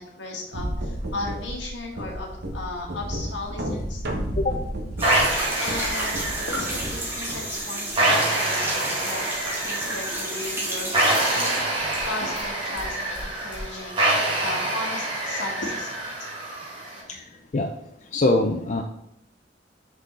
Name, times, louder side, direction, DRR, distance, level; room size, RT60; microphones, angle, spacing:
voice 1, 0.0-4.0 5.2-16.3 17.2-17.3, left 2 dB, 75° left, 0 dB, 1.5 m, -36 dB
sound 1, 0.5-7.5, equal, 60° right, 1.2 m, -32 dB
sound 2, 5.0-12.5 12.8-13.6, right 1 dB, 15° right, 1.7 m, -32 dB
sound 3, 5.0-17.0, right 1 dB, 30° right, 2.1 m, -26 dB
voice 2, 18.1-18.8, left 2 dB, 40° left, 3 dB, 0.4 m, -23 dB
6.3 x 5.4 x 3.8 m, 0.82 s
head